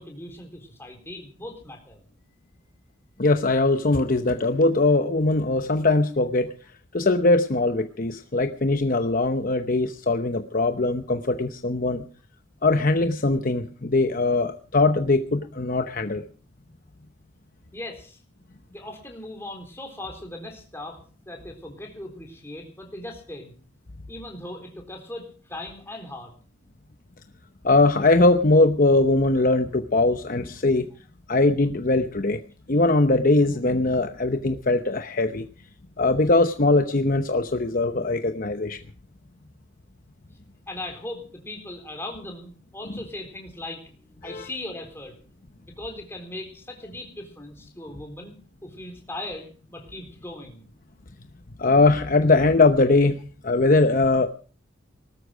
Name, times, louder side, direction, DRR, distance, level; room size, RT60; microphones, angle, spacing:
voice 1, 0.0-2.0 17.7-18.2 18.7-23.5 24.1-26.3 40.7-45.2 45.6-48.4 48.6-50.6, left 1 dB, 10° left, 3 dB, 3.7 m, -39 dB
voice 2, 3.2-6.5 6.9-12.0 12.6-16.2 27.6-30.9 31.3-32.4 32.7-35.5 36.0-38.8 44.2-44.5 51.6-54.3, left 2 dB, 45° left, 7 dB, 0.9 m, -21 dB
19.5 x 13.0 x 5.1 m, 0.41 s
head